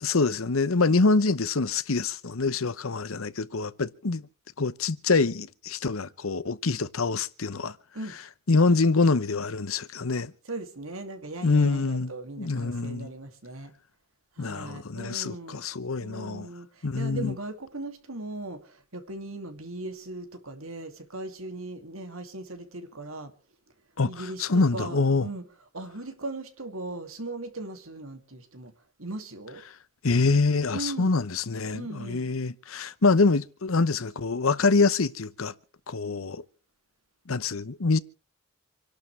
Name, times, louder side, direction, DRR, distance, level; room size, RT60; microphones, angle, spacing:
voice 1, 0.0-4.3 4.6-7.8 8.5-10.3 11.4-12.1 12.4-13.1 14.4-16.5 16.8-17.3 24.0-25.3 30.0-35.5 35.9-36.4 37.3-38.0, left 3 dB, 80° left, 0.9 m, -25 dB
voice 2, 10.4-13.7 14.4-15.6 16.0-23.3 24.0-28.7 29.0-29.6 30.7-31.2 31.7-32.3, right 2 dB, 85° right, 2.5 m, -38 dB
27.5 x 11.5 x 3.3 m
head